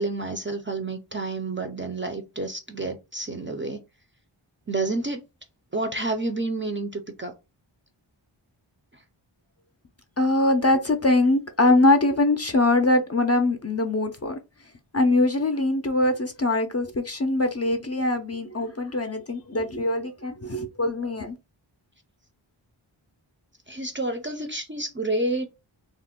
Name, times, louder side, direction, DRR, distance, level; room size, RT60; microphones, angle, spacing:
voice 1, 0.0-3.8 4.7-5.2 5.7-7.3 23.7-25.5, right 2 dB, 25° right, 0.4 m, -29 dB
voice 2, 10.2-14.4 14.9-21.4, left 2 dB, 35° left, 0.4 m, -22 dB
2.4 x 2.1 x 3.5 m
wide cardioid pair, 45°, 49 cm